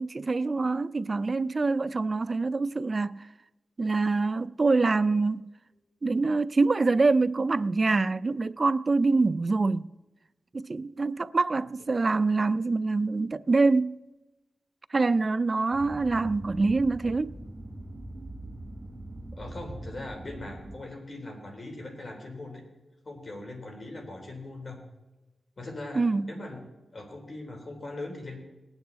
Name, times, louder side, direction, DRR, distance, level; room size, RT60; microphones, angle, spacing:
voice 1, 0.0-3.3 3.8-5.5 6.0-9.9 10.5-14.0 14.9-17.4 26.0-26.3, right 3 dB, 40° right, 0.4 m, -25 dB
sound 1, 15.7-20.8, right 1 dB, 20° right, 3.2 m, -42 dB
voice 2, 19.4-22.6 23.1-24.8 25.6-26.7 26.9-28.4, left 2 dB, 45° left, 3.7 m, -40 dB
19.5 x 8.9 x 4.0 m
cardioid pair, 75°, 0 cm